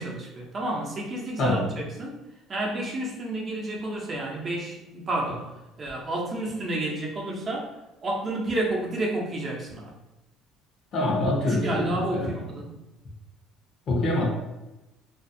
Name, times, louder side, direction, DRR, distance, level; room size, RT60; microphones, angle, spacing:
voice 1, 0.0-2.2 2.5-5.5 5.8-7.7 8.0-9.9 11.4-12.7, right 1 dB, 40° right, -1 dB, 0.7 m, -30 dB
voice 2, 1.4-1.7 10.9-12.3 13.9-14.2, left 1 dB, 55° left, -1 dB, 0.8 m, -25 dB
2.5 x 2.4 x 2.6 m, 1.0 s
supercardioid pair, 85°, 0 cm